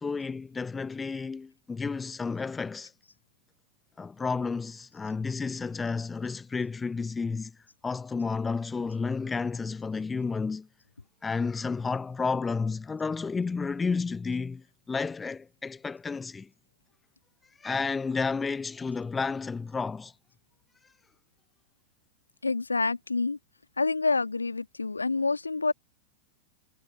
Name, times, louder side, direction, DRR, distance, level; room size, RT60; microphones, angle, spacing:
voice 1, 0.0-2.9 4.0-7.5 7.8-10.7 11.2-16.5 17.6-20.1, left 4 dB, 15° left, 0.8 m, -31 dB
voice 2, 22.4-23.4 23.8-25.7, left 3 dB, 80° left, 1.8 m, -27 dB
figure-of-eight pair, 90°, 0 cm